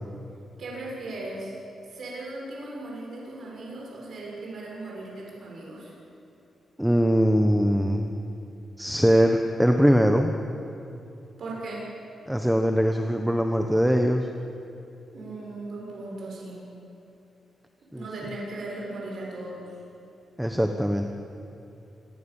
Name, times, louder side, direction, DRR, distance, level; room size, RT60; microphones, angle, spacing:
voice 1, 0.6-1.5 1.9-5.9 11.4-11.8 15.1-16.6 17.9-19.7, right 2 dB, 60° right, -3 dB, 7.0 m, -37 dB
voice 2, 6.8-8.1 8.8-10.3 12.3-14.3 17.9-18.0 20.4-21.0, equal, 5° right, 4 dB, 1.2 m, -21 dB
26.0 x 21.0 x 7.2 m, 2.8 s
wide cardioid pair, 125°, 0 cm